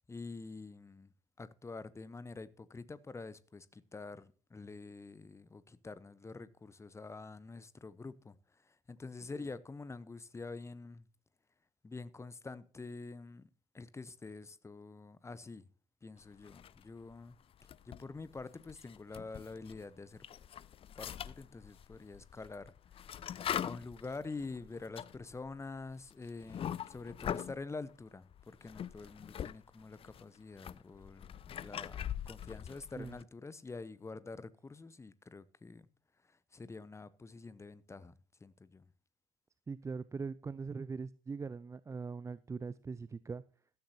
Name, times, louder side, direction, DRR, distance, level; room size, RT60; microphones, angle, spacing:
voice 1, 0.1-1.1 1.4-8.4 8.6-11.0 11.8-13.5 13.7-15.7 16.0-17.4 17.8-20.2 20.9-22.7 23.6-35.9 36.3-38.1 38.4-38.8, left 3 dB, 15° left, 1.0 m, -47 dB
sound 1, 16.4-17.1 17.5-19.8 20.2-27.6 28.3-29.5 29.8-33.2, left 9 dB, 30° left, 0.5 m, -42 dB
voice 2, 39.7-43.4, right 4 dB, 15° right, 0.5 m, -41 dB
15.5 x 13.0 x 2.8 m
figure-of-eight pair, 60°, 18 cm